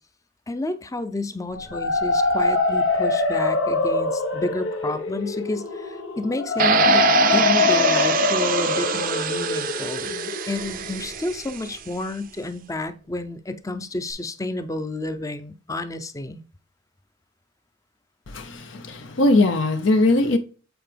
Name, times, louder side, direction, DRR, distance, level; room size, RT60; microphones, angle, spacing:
voice 1, 0.5-16.4, left 2 dB, 15° left, 0.5 m, -30 dB
sound 1, 1.5-11.4, left 3 dB, 90° left, 1.2 m, -23 dB
sound 2, 6.6-11.6, right 7 dB, 45° right, 0.5 m, -24 dB
voice 2, 18.3-20.4, left 2 dB, 70° left, 0.7 m, -20 dB
7.9 x 4.5 x 3.3 m
head